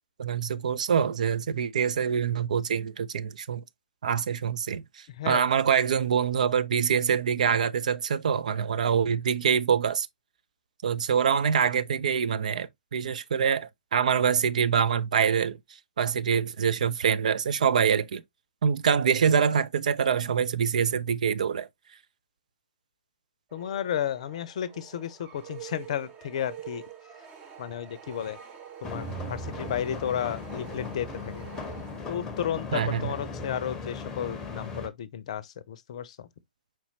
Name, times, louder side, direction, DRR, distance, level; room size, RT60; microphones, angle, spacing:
voice 1, 0.2-3.6 4.0-10.1 10.8-15.6 16.0-18.2 18.6-21.7 32.7-33.1, right 7 dB, 55° right, 0.5 m, -25 dB
voice 2, 23.5-26.8 27.6-28.4 28.8-31.5 32.1-36.3, left 9 dB, 45° left, 0.6 m, -33 dB
sound 1, 23.5-32.6, right 8 dB, 25° right, 1.1 m, -47 dB
sound 2, 28.8-34.9, left 3 dB, 10° left, 0.9 m, -37 dB
4.5 x 4.2 x 2.8 m
figure-of-eight pair, 125°, 5 cm